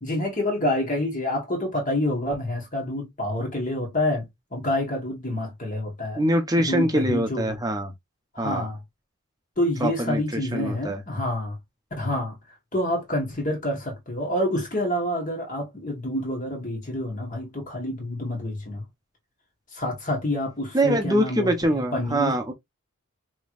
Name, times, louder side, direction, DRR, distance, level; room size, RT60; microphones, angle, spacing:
voice 1, 0.0-6.2 6.6-7.6 8.3-8.8 9.6-11.5 12.0-12.3 12.7-18.8 19.7-22.4, left 1 dB, 35° left, 1.7 m, -28 dB
voice 2, 6.2-7.9 8.4-8.7 9.8-11.0 20.7-22.5, right 1 dB, 15° right, 0.9 m, -24 dB
5.1 x 3.2 x 2.5 m
head